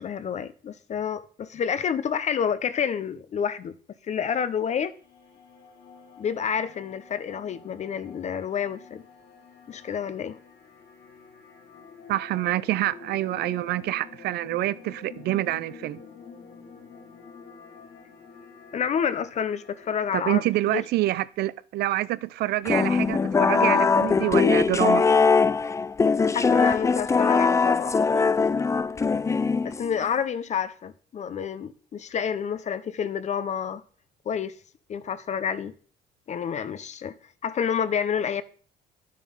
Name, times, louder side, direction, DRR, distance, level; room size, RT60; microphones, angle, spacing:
voice 1, 0.0-3.7 4.1-4.9 6.2-9.0 9.7-10.4 18.7-20.8 26.3-28.0 29.6-33.8 34.3-34.6 34.9-35.7 36.3-37.1 37.4-38.4, left 7 dB, 45° left, 0.8 m, -29 dB
sound 1, 4.2-21.1, left 5 dB, 70° left, 3.3 m, -48 dB
voice 2, 12.1-16.0 20.1-25.0, right 15 dB, 70° right, 0.6 m, -27 dB
sound 2, 22.7-30.0, left 5 dB, 15° left, 0.4 m, -21 dB
10.5 x 7.5 x 5.6 m
cardioid pair, 110°, 17 cm